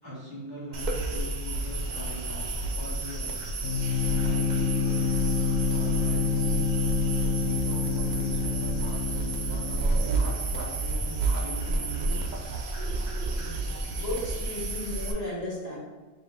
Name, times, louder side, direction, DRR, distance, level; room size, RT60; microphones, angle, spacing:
voice 1, 0.0-2.5 2.7-5.0 5.7-6.7 7.0-12.1, equal, 20° right, -10 dB, 1.0 m, -42 dB
sound 1, 0.7-15.1, right 2 dB, 55° right, 0.5 m, -30 dB
sound 2, 1.6-9.6, right 2 dB, 85° right, 0.9 m, -48 dB
sound 3, 3.6-10.3, left 5 dB, 75° left, 0.9 m, -28 dB
voice 2, 13.9-15.8, left 1 dB, 35° left, -5 dB, 1.4 m, -34 dB
5.5 x 2.3 x 3.2 m, 1.3 s
omnidirectional pair, 1.2 m